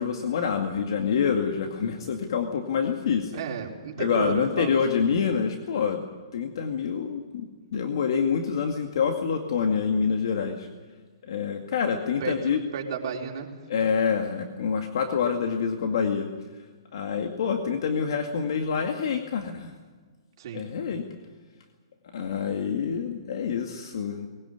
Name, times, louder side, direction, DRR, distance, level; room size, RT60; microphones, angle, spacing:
voice 1, 0.0-3.3 4.0-6.0 6.3-10.7 11.3-12.6 13.7-16.3 16.9-19.7 20.5-21.0 22.1-24.3, left 6 dB, 65° left, 4 dB, 2.2 m, -26 dB
voice 2, 3.3-5.1 12.2-13.5 20.4-20.7, right 6 dB, 55° right, 0 dB, 4.1 m, -33 dB
21.0 x 17.5 x 9.4 m, 1.5 s
hypercardioid pair, 145°, 3 cm